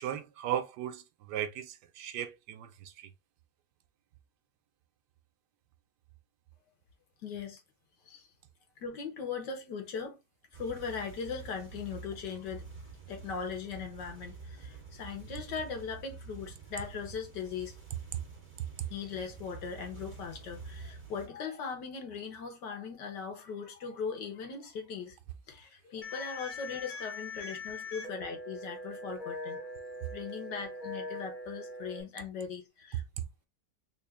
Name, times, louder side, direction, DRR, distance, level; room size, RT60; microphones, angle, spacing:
voice 1, 0.0-3.1, right 10 dB, 80° right, 1.2 m, -37 dB
voice 2, 7.2-7.6 8.1-8.3 8.8-10.2 10.5-12.7 13.1-17.8 18.9-25.2 25.5-29.6 30.1-33.0, left 6 dB, 80° left, 1.7 m, -39 dB
sound 1, 10.5-21.3, right 4 dB, 25° right, 1.7 m, -48 dB
sound 2, 26.0-32.0, left 2 dB, 50° left, 0.6 m, -42 dB
3.7 x 2.6 x 3.3 m
omnidirectional pair, 1.8 m